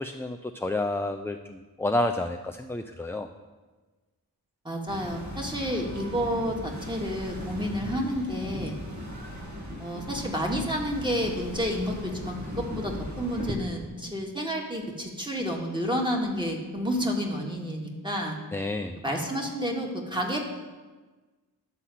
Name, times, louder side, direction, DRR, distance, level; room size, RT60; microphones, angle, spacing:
voice 1, 0.0-3.3 18.5-19.0, left 2 dB, 5° left, 6 dB, 0.4 m, -30 dB
voice 2, 4.6-8.8 9.8-18.4 19.0-20.4, equal, 10° right, 0 dB, 1.8 m, -30 dB
sound 1, 4.9-13.5, left 1 dB, 45° right, 1.9 m, -37 dB
11.0 x 4.2 x 7.6 m, 1.3 s
cardioid pair, 45°, 39 cm